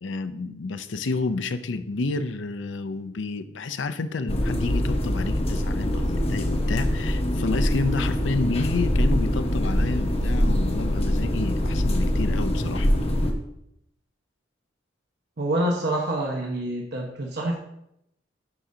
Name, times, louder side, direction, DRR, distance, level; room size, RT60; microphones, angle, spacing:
voice 1, 0.0-12.9, left 3 dB, 75° left, 11 dB, 0.5 m, -30 dB
sound 1, 4.3-13.3, left 1 dB, 35° left, 0.9 m, -24 dB
voice 2, 15.4-17.6, right 1 dB, 60° right, 0 dB, 1.0 m, -26 dB
11.5 x 5.0 x 2.7 m, 0.79 s
head